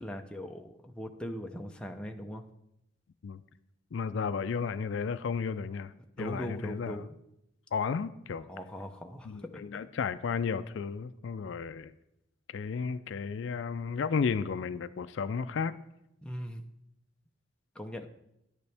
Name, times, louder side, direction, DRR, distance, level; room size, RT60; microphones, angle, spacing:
voice 1, 0.0-2.4 6.2-7.1 8.5-9.8 16.2-16.6 17.7-18.1, equal, 5° left, 3 dB, 0.6 m, -40 dB
voice 2, 3.9-7.0 7.7-8.4 9.3-11.9 12.5-15.7, left 5 dB, 65° left, 13 dB, 0.4 m, -33 dB
10.5 x 9.5 x 3.4 m, 0.82 s
head